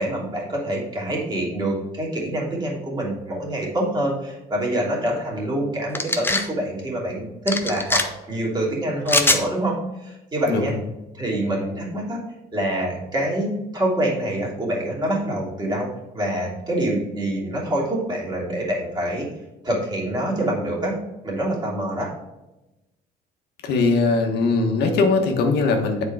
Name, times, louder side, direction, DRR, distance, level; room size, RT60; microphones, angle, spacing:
voice 1, 0.0-10.7 11.1-12.2 12.5-19.3 19.6-21.0 21.2-22.1, right 1 dB, 25° right, -3 dB, 2.9 m, -26 dB
sound 1, 5.9-6.5 7.5-8.0 9.1-9.4, left 2 dB, 15° left, 0.7 m, -21 dB
voice 2, 10.5-10.8 23.6-26.0, left 3 dB, 75° left, 3 dB, 1.3 m, -20 dB
7.5 x 4.6 x 4.8 m, 0.99 s
cardioid pair, 110°, 17 cm